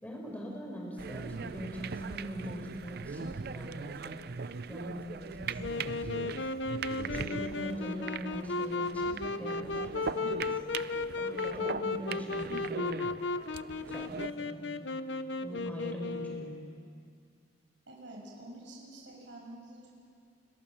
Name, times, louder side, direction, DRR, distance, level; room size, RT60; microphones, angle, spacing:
voice 1, 0.0-4.2 4.7-6.3 7.0-10.6 11.2-13.0 13.9-14.8 15.4-16.5, equal, 10° left, -1 dB, 5.3 m, -42 dB
sound 1, 1.0-14.3, right 5 dB, 55° right, 0.5 m, -40 dB
Wind instrument woodwind instrument, 5.6-16.7, left 3 dB, 70° left, 0.9 m, -35 dB
voice 2, 17.9-20.0, right 1 dB, 75° right, -2 dB, 6.7 m, -48 dB
30.0 x 21.5 x 7.4 m, 2.3 s
head